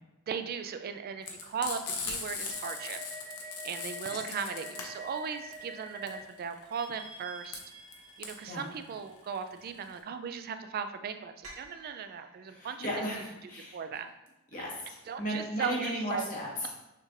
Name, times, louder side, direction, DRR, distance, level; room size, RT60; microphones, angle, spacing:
voice 1, 0.3-3.0 3.6-7.6 8.2-12.9 13.7-14.1 15.1-16.3, right 6 dB, 45° right, 9 dB, 0.3 m, -37 dB
Frying (food), 1.2-10.0, left 5 dB, 85° left, 0.8 m, -39 dB
sound 1, 2.5-6.2 6.7-8.9 11.4-12.5, right 1 dB, 75° right, 1.6 m, -47 dB
voice 2, 12.5-13.8 14.5-16.7, equal, 40° left, -4 dB, 1.3 m, -35 dB
6.5 x 3.2 x 2.5 m, 0.94 s
head